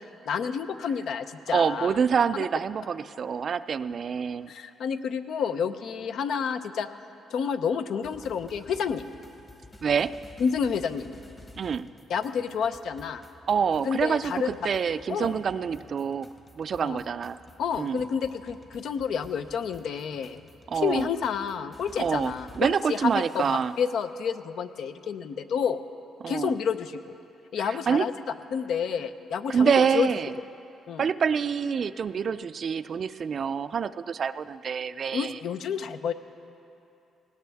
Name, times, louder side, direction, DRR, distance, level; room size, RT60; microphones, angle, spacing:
voice 1, 0.3-2.0 4.5-6.9 7.3-9.1 10.4-11.1 12.1-13.2 13.8-14.7 15.1-15.3 16.8-17.0 17.6-20.4 20.7-25.8 26.3-27.0 27.5-28.1 28.5-30.1 30.9-31.1 35.1-36.1, left 6 dB, 70° left, 10 dB, 0.6 m, -29 dB
voice 2, 1.5-4.5 9.8-10.1 11.6-11.9 13.5-16.3 16.6-17.4 17.8-18.0 20.7-21.1 22.0-23.7 26.2-26.5 27.6-28.1 29.5-30.3 31.0-35.4, right 6 dB, 50° right, 14 dB, 0.4 m, -26 dB
sound 1, 8.0-23.9, left 2 dB, 30° left, 1.4 m, -52 dB
19.0 x 17.0 x 3.5 m, 2.8 s
cardioid pair, 90°, 0 cm